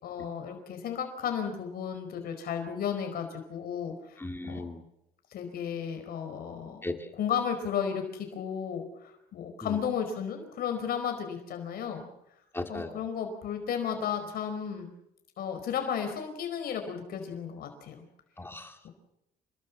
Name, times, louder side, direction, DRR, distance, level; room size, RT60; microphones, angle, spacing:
voice 1, 0.0-4.7 5.3-6.8 7.2-12.0 12.7-14.9 15.4-18.0 18.8-18.9, left 7 dB, 65° left, 5 dB, 4.8 m, -34 dB
voice 2, 4.2-4.8 6.8-7.1 9.6-9.8 12.5-13.0 18.4-18.8, left 2 dB, 15° left, 5 dB, 2.5 m, -37 dB
28.5 x 20.0 x 7.4 m, 0.84 s
cardioid pair, 110°, 17 cm